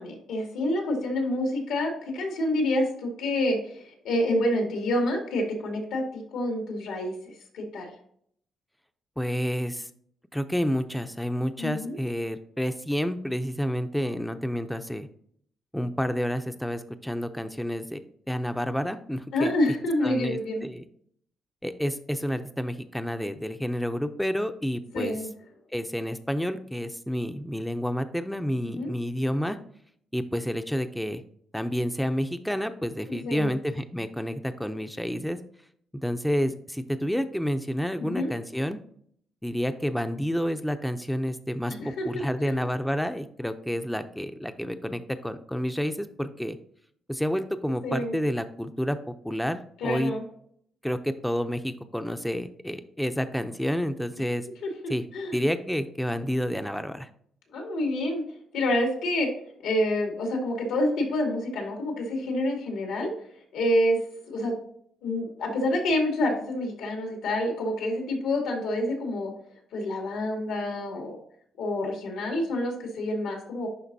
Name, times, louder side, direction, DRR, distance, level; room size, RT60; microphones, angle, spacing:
voice 1, 0.0-7.1 7.5-7.9 11.6-12.0 19.3-20.6 24.9-25.3 28.7-28.9 33.1-33.5 38.0-38.3 41.8-42.5 47.8-48.2 49.8-50.2 54.6-54.7 55.1-55.4 57.5-58.2 58.5-59.3 59.6-63.1 63.5-64.0 64.3-64.6 65.0-69.3 69.7-71.2 71.6-73.7, left 1 dB, 90° left, 1 dB, 2.4 m, -27 dB
voice 2, 9.2-9.9 10.3-15.1 15.7-18.0 18.3-19.5 20.0-20.9 21.6-25.2 25.7-29.6 30.1-31.2 31.5-35.4 35.9-38.8 39.4-46.6 47.1-50.1 50.8-54.5 54.9-55.0 55.3-57.1, equal, 5° left, 8 dB, 0.5 m, -29 dB
11.0 x 3.8 x 2.7 m, 0.63 s
cardioid pair, 90°, 0 cm